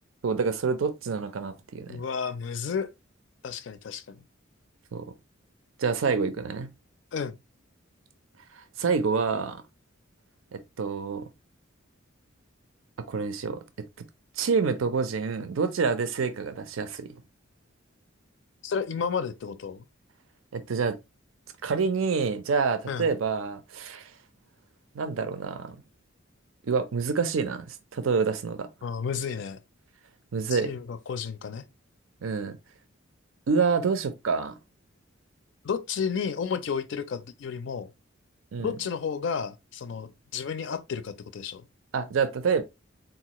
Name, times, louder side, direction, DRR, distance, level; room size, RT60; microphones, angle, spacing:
voice 1, 0.2-2.0 4.9-5.1 5.8-6.7 8.8-9.6 10.5-11.3 13.1-13.6 14.4-17.2 20.5-21.0 21.6-24.1 24.9-25.7 26.6-28.7 30.3-30.7 32.2-32.6 33.5-34.5 38.5-38.7 41.9-42.6, right 5 dB, 85° right, 0.5 m, -27 dB
voice 2, 1.9-2.9 3.4-4.2 7.1-7.4 18.6-19.8 22.9-23.1 28.8-29.6 30.5-31.7 35.6-37.9 38.6-41.7, left 6 dB, 65° left, 0.4 m, -32 dB
4.0 x 2.3 x 2.8 m
head